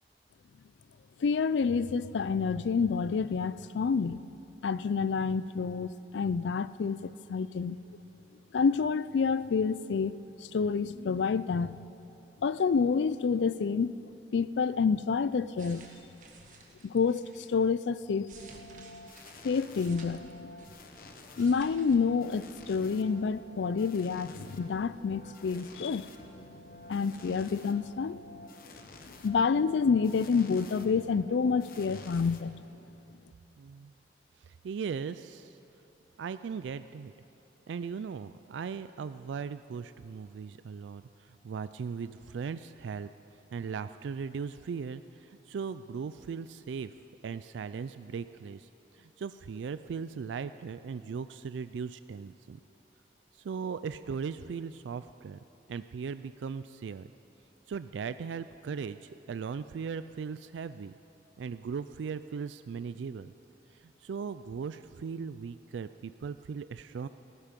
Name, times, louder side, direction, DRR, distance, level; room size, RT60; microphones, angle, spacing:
voice 1, 1.2-4.2 4.6-7.8 8.5-11.8 12.4-14.0 14.3-15.9 16.8-18.3 19.4-20.5 21.4-26.1 26.9-28.2 29.2-32.6, left 5 dB, 80° left, 16 dB, 0.4 m, -28 dB
sound 1, 15.5-17.5 18.0-20.9 21.2-22.0 22.3-22.5, right 4 dB, 45° right, 1.5 m, -54 dB
sound 2, 18.3-33.0, left 2 dB, 50° left, 1.0 m, -50 dB
voice 2, 33.6-33.9 34.4-35.6 36.2-37.1 37.7-43.1 43.5-46.9 47.2-52.6 53.3-55.4 55.7-57.1 57.7-60.9 61.4-63.3 63.7-67.1, right 6 dB, 85° right, 12 dB, 0.3 m, -38 dB
17.5 x 14.5 x 5.2 m, 2.8 s
head